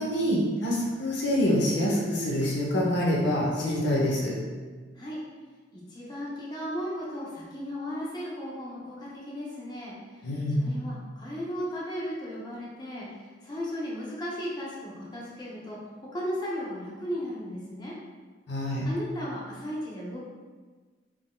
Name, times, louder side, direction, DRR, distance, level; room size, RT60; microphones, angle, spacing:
voice 1, 0.0-4.4 10.2-10.7 18.5-18.9, equal, 65° left, -3 dB, 0.7 m, -26 dB
voice 2, 5.7-10.3 10.6-13.1 13.4-15.8 16.1-17.9 18.8-20.2, equal, 25° left, -6 dB, 0.5 m, -35 dB
3.5 x 2.5 x 2.2 m, 1.4 s
head